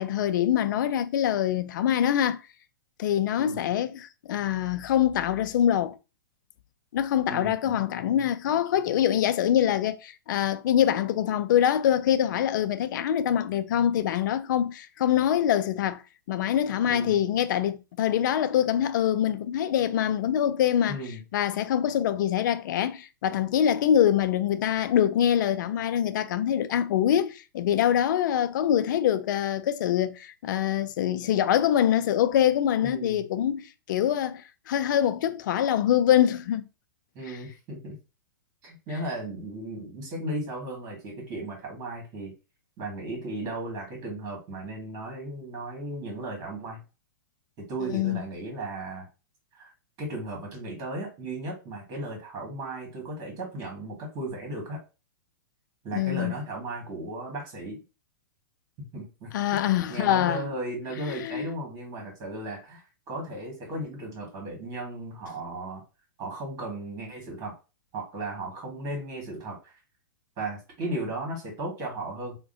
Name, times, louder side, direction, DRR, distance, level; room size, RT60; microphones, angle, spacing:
voice 1, 0.0-2.4 3.0-6.0 6.9-16.0 16.3-21.0 21.3-36.6 37.3-37.4 47.9-48.3 55.9-56.3 59.3-60.5 61.1-61.4, left 10 dB, 60° left, 0.4 m, -24 dB
voice 2, 7.3-7.8 16.8-17.2 20.9-21.2 32.8-33.3 37.2-37.9 38.6-42.3 42.8-46.8 47.7-49.1 49.5-49.7 50.0-54.8 55.8-57.8 58.8-59.6 59.9-62.8 63.1-65.8 66.2-67.5 67.9-69.7 70.4-72.4, right 2 dB, 35° right, 1.7 m, -36 dB
3.4 x 2.1 x 2.6 m
hypercardioid pair, 120°, 11 cm